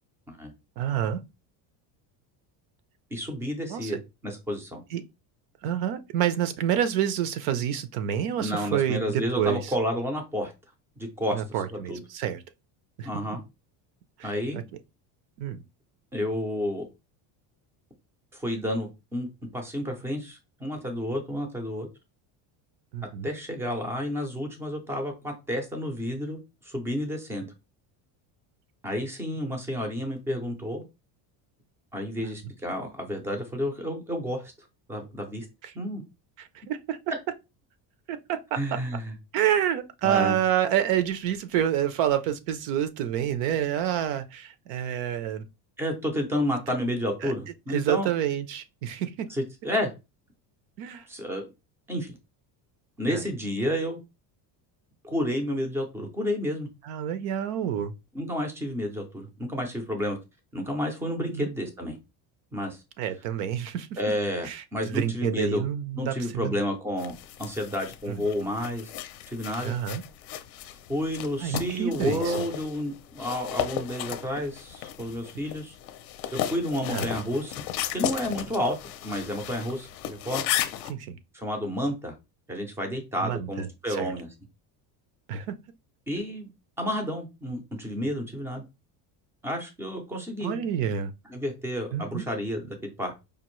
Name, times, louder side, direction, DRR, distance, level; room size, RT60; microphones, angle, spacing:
voice 1, 0.8-1.2 3.7-3.9 4.9-5.0 5.6-9.7 11.3-12.4 13.0-13.1 14.2-14.6 15.4-15.6 22.9-23.3 35.6-35.7 36.7-37.0 38.1-38.6 39.3-45.4 47.2-47.3 47.7-49.3 50.8-51.0 53.1-53.2 56.8-57.9 61.2-61.5 63.0-63.9 64.4-66.6 68.1-68.3 69.6-70.0 71.4-72.3 76.9-77.1 80.9-81.2 83.2-84.1 85.3-85.6 90.4-91.1 91.9-92.2, right 10 dB, 75° right, 0.7 m, -28 dB
voice 2, 3.1-4.8 8.4-10.5 11.0-11.4 11.7-12.0 13.0-13.4 14.2-14.6 16.1-16.9 18.3-19.3 19.5-21.9 23.2-26.4 26.6-27.5 28.8-30.8 31.9-34.5 34.9-35.5 35.7-36.0 38.5-39.2 40.0-40.4 45.8-48.1 49.3-49.9 51.1-51.5 51.9-52.2 53.0-54.0 55.0-56.7 58.1-60.2 60.5-62.0 62.5-62.8 64.0-65.6 66.0-68.9 69.3-69.7 70.9-75.8 76.3-77.6 77.9-78.8 79.0-80.4 81.3-82.1 82.5-84.3 86.1-86.5 86.8-88.6 89.4-90.6 91.3-93.1, equal, 5° right, 0.4 m, -30 dB
sound 1, 67.0-80.9, left 11 dB, 50° left, 0.5 m, -35 dB
5.1 x 2.5 x 3.0 m
cardioid pair, 180°, 46 cm